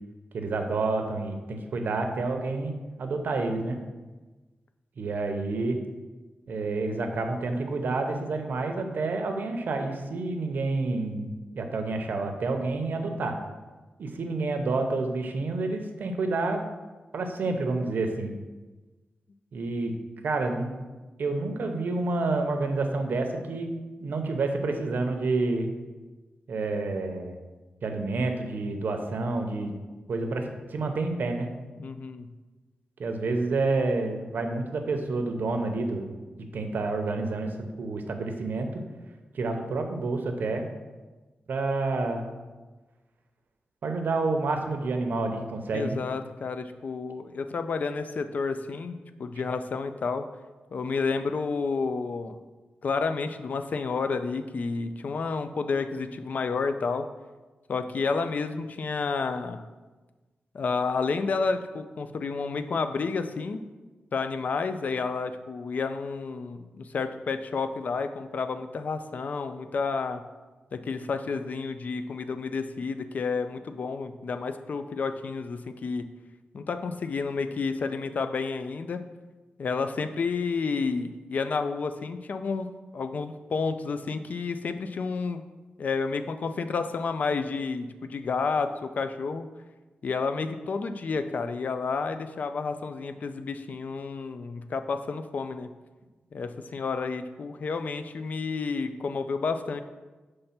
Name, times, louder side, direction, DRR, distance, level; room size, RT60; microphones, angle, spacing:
voice 1, 0.3-3.8 5.0-5.8 6.5-13.4 14.0-16.6 17.1-18.4 19.5-19.9 20.2-20.7 21.2-23.7 24.0-25.7 26.5-27.4 27.8-29.8 30.1-31.5 33.0-38.8 39.3-40.7 41.5-42.3 43.8-46.0, right 3 dB, 65° right, 5 dB, 0.7 m, -29 dB
voice 2, 31.8-32.3 45.7-50.3 50.7-52.4 52.8-57.1 57.7-59.6 60.5-63.6 64.1-70.2 70.7-76.0 76.5-79.0 79.6-85.4 85.8-89.5 90.0-95.7 96.3-99.8, left 4 dB, 50° left, 9 dB, 0.4 m, -30 dB
5.5 x 3.3 x 5.7 m, 1.2 s
wide cardioid pair, 165°, 3 cm